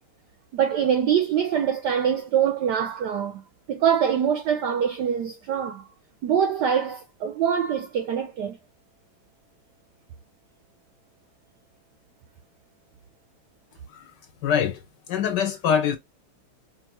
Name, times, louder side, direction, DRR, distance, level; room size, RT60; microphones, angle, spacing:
voice 1, 0.5-3.4 3.7-5.9 6.2-8.6, right 8 dB, 80° right, 0.9 m, -24 dB
voice 2, 14.4-14.8 15.1-16.0, left 8 dB, 70° left, 1.1 m, -24 dB
5.2 x 2.4 x 2.8 m
omnidirectional pair, 2.4 m